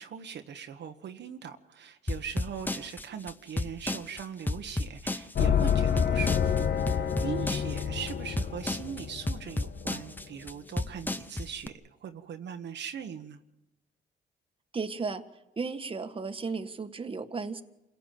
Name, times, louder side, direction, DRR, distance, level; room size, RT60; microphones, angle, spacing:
voice 1, 0.0-13.4, right 7 dB, 60° right, 1.3 m, -40 dB
sound 1, 2.1-11.7, left 2 dB, 10° left, 0.9 m, -33 dB
sound 2, 5.4-10.1, left 8 dB, 55° left, 1.3 m, -28 dB
voice 2, 14.7-15.2 15.6-17.6, right 4 dB, 25° right, 1.6 m, -34 dB
27.5 x 17.0 x 7.6 m
cardioid pair, 90°, 20 cm